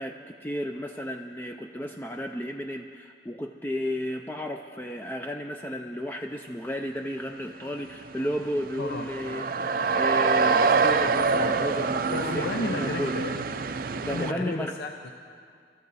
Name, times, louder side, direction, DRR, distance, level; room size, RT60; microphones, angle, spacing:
voice 1, 0.0-13.1 14.0-14.8, equal, 10° left, 3 dB, 0.4 m, -33 dB
sound 1, 7.8-7.9 8.1-14.3, right 4 dB, 50° right, 0.4 m, -25 dB
voice 2, 8.8-9.1 12.1-13.6 13.9-15.1, left 2 dB, 60° left, 4 dB, 0.7 m, -33 dB
24.0 x 13.0 x 4.1 m, 2.2 s
head